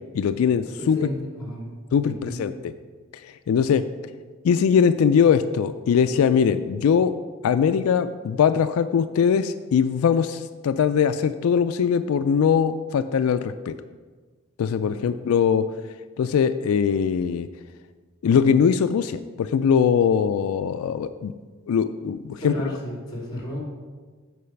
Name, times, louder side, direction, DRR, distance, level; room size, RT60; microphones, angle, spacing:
voice 1, 0.1-1.0 1.9-2.7 3.2-3.8 4.4-7.1 7.4-13.8 14.6-15.7 16.2-17.5 18.2-21.3 21.7-22.7, left 7 dB, 85° left, 11 dB, 0.3 m, -21 dB
voice 2, 0.8-2.5 14.8-15.4 22.4-23.6, equal, 20° left, -2 dB, 2.2 m, -33 dB
8.3 x 4.7 x 5.8 m, 1.4 s
head